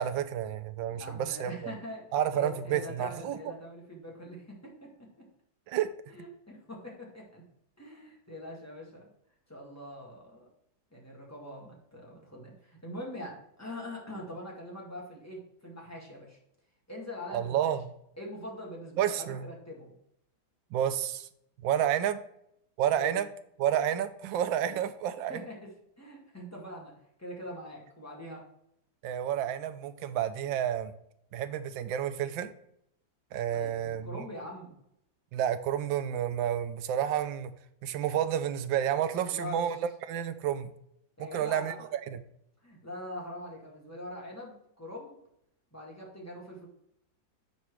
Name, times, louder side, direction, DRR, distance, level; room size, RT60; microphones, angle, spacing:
voice 1, 0.0-1.7 2.1-3.4 5.7-5.9 17.3-17.8 19.0-19.5 20.7-21.3 21.6-22.2 22.8-23.3 23.6-25.4 29.0-30.9 31.3-32.5 33.3-34.2 35.3-37.5 37.8-39.8 40.0-40.7 41.2-42.2, right 10 dB, 85° right, 11 dB, 1.4 m, -30 dB
voice 2, 0.9-4.9 6.1-7.4 7.8-9.1 9.5-10.5 10.9-16.4 16.9-17.7 18.2-19.9 22.9-23.2 24.6-24.8 25.3-25.7 26.0-28.4 33.5-34.8 39.1-39.6 41.2-41.8 42.6-45.2 45.7-46.7, left 1 dB, 10° left, -3 dB, 1.7 m, -43 dB
6.9 x 4.4 x 4.7 m, 0.75 s
omnidirectional pair, 2.0 m